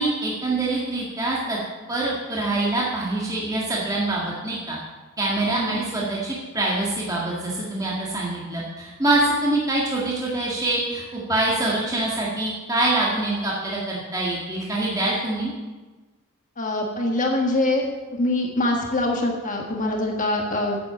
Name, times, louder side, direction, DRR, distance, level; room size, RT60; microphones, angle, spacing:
voice 1, 0.0-1.6 1.9-4.8 5.2-15.5, right 2 dB, 15° right, -5 dB, 1.8 m, -25 dB
voice 2, 16.6-20.8, left 1 dB, 35° left, 1 dB, 1.4 m, -24 dB
9.4 x 8.3 x 7.2 m, 1.3 s
head